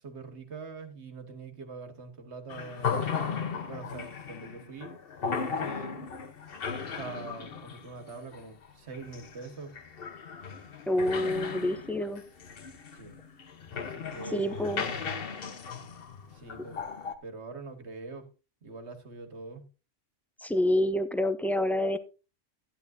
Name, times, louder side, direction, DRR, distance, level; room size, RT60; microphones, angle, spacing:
voice 1, 0.0-3.2 3.6-5.0 5.4-6.1 6.8-9.8 12.9-13.2 13.7-14.9 16.3-16.8 17.2-18.3 18.6-19.7, right 4 dB, 65° right, 1.8 m, -44 dB
sound 1, 2.5-17.2, left 6 dB, 50° left, 1.1 m, -36 dB
voice 2, 10.9-12.2 14.3-14.8 20.4-22.0, left 1 dB, ahead, 0.4 m, -27 dB
11.5 x 11.0 x 2.7 m
omnidirectional pair, 1.3 m